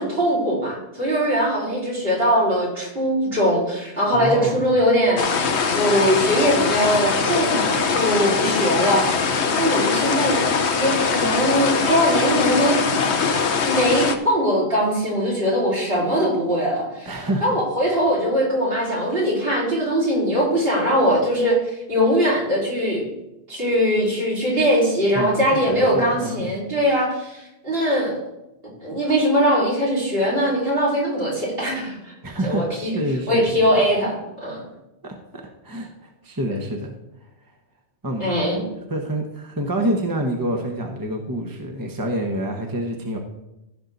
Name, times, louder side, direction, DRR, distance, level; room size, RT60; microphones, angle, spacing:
voice 1, 0.0-10.4 10.8-12.8 13.6-23.0 23.5-28.1 28.8-32.0 32.4-32.9 33.3-34.2 34.4-34.6 38.2-38.6, equal, 60° right, -4 dB, 5.0 m, -21 dB
voice 2, 4.1-4.6 17.0-17.5 25.1-25.3 25.7-26.5 32.2-33.5 35.0-35.1 35.6-36.9 38.0-38.3 38.9-43.2, right 1 dB, 20° right, 2 dB, 1.1 m, -27 dB
sound 1, 5.2-14.2, left 5 dB, 80° left, 1.2 m, -22 dB
15.0 x 6.3 x 4.0 m, 0.91 s
omnidirectional pair, 1.1 m